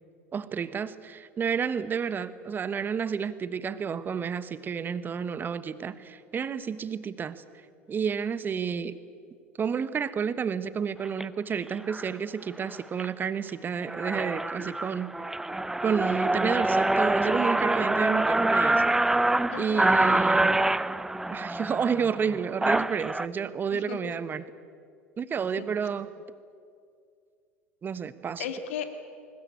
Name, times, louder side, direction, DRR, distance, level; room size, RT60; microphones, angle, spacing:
voice 1, 0.3-7.4 7.9-9.0 9.6-15.1 15.8-18.8 19.6-20.5 21.3-24.4 25.2-26.1 27.8-28.4, right 6 dB, 30° right, 15 dB, 1.2 m, -30 dB
sound 1, 11.0-11.2 11.9-12.1 12.6-13.1 13.5-13.6 13.8-23.3, right 2 dB, 5° right, 0.5 m, -25 dB
voice 2, 19.5-20.2 23.7-24.0 25.6-25.7 28.4-28.9, left 9 dB, 65° left, 8 dB, 2.2 m, -36 dB
20.5 x 20.0 x 8.7 m, 2.3 s
figure-of-eight pair, 75°, 7 cm